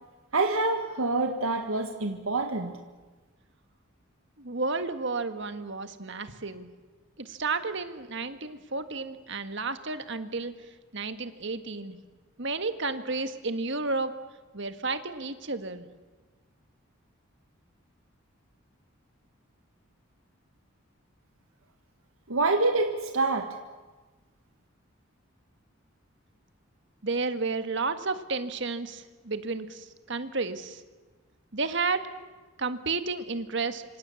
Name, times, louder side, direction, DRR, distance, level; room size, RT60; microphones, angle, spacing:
voice 1, 0.3-2.8 22.3-23.5, right 3 dB, 80° right, 5 dB, 1.6 m, -26 dB
voice 2, 4.4-6.7 7.2-10.5 10.9-12.0 12.4-14.1 14.5-15.9 27.0-30.8 31.5-32.1 32.6-33.8, right 3 dB, 55° right, 9 dB, 1.7 m, -32 dB
26.5 x 25.5 x 7.2 m, 1.3 s
head